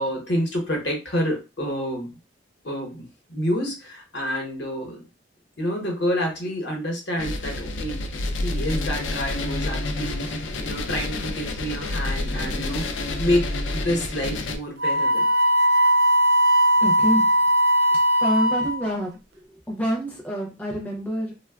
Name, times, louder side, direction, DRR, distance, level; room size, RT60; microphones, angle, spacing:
voice 1, 0.0-2.1 2.6-5.0 5.6-8.1 8.4-12.9 13.2-15.3, equal, 60° left, 1 dB, 0.9 m, -28 dB
sound 1, 7.2-14.6, left 2 dB, 80° left, 0.4 m, -28 dB
Wind instrument woodwind instrument, 14.8-19.0, equal, 55° right, 0.3 m, -19 dB
voice 2, 16.8-17.2 18.2-19.2 19.7-21.3, equal, 10° left, -1 dB, 0.4 m, -26 dB
3.1 x 2.2 x 2.2 m, 0.29 s
head